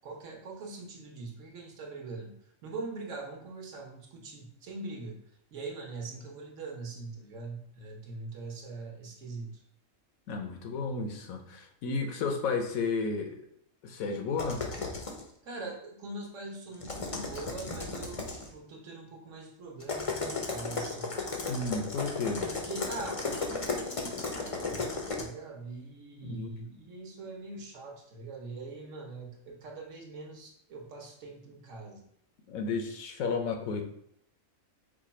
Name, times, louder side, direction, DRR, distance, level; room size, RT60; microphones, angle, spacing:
voice 1, 0.0-2.4 2.6-5.2 5.5-9.6 15.4-21.2 22.4-32.0, right 3 dB, 65° right, 1 dB, 1.2 m, -42 dB
voice 2, 10.3-13.4 13.8-14.6 21.5-22.5 26.3-26.5 32.5-33.8, left 4 dB, 85° left, 4 dB, 1.1 m, -32 dB
sound 1, 14.4-15.2 16.7-18.5 19.8-25.2, left 3 dB, 45° left, 0.4 m, -35 dB
4.9 x 2.3 x 4.1 m, 0.71 s
omnidirectional pair, 1.4 m